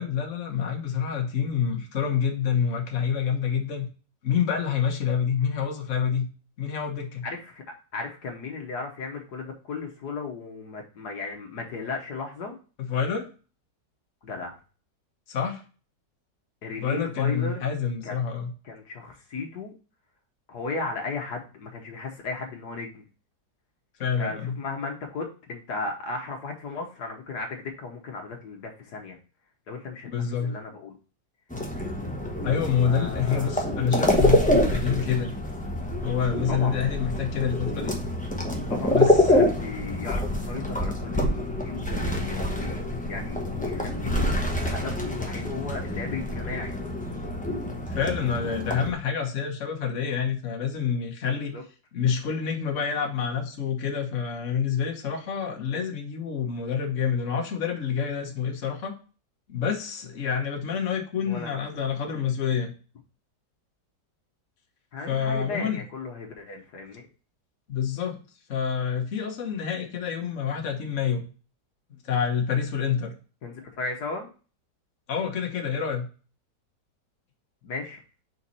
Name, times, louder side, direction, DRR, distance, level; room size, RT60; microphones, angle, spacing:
voice 1, 0.0-3.9 4.2-6.3 6.6-7.3 12.9-13.2 15.3-15.6 16.7-18.5 24.0-24.6 30.1-30.5 32.4-35.3 36.0-37.9 38.9-39.3 47.9-51.5 51.9-59.0 59.5-62.7 65.1-65.8 67.7-68.2 68.5-71.2 72.0-73.1 75.1-76.1, left 7 dB, 45° left, 2 dB, 1.4 m, -27 dB
voice 2, 7.2-7.6 7.9-12.5 14.2-14.6 16.6-17.6 18.0-18.2 18.6-19.7 20.5-23.1 24.2-29.2 29.7-31.0 32.8-33.7 36.5-36.7 38.7-46.7 51.5-51.6 61.2-61.6 64.9-67.1 73.4-74.3 77.6-78.0, left 4 dB, 65° left, 2 dB, 1.6 m, -36 dB
sound 1, 31.5-48.9, left 1 dB, 10° left, 0.5 m, -26 dB
5.3 x 4.5 x 4.1 m, 0.36 s
omnidirectional pair, 1.9 m